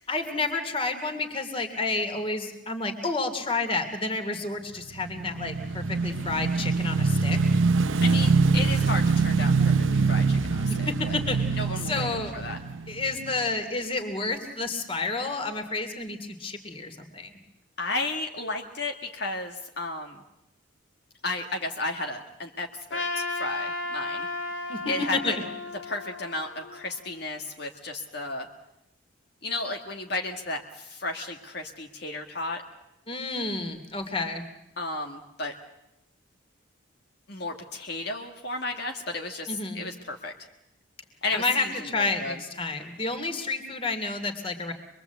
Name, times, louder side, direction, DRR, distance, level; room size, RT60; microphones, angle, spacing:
voice 1, 0.1-7.4 10.7-12.3 12.9-17.3 24.7-24.8 25.1-25.4 33.1-34.4 39.5-39.8 41.3-44.7, left 3 dB, 25° left, 6 dB, 2.7 m, -30 dB
Motorcycle / Engine, 5.0-13.5, right 4 dB, 80° right, 0.9 m, -24 dB
voice 2, 8.0-11.2 11.6-12.1 12.3-12.6 17.8-20.2 21.2-24.3 24.9-25.3 25.9-28.5 29.4-32.6 34.8-35.5 37.3-40.3 41.2-41.7 42.0-42.4, left 2 dB, 55° left, 2 dB, 1.8 m, -33 dB
Trumpet, 22.9-27.2, left 3 dB, 80° left, 3.1 m, -34 dB
26.0 x 22.5 x 8.1 m, 0.88 s
head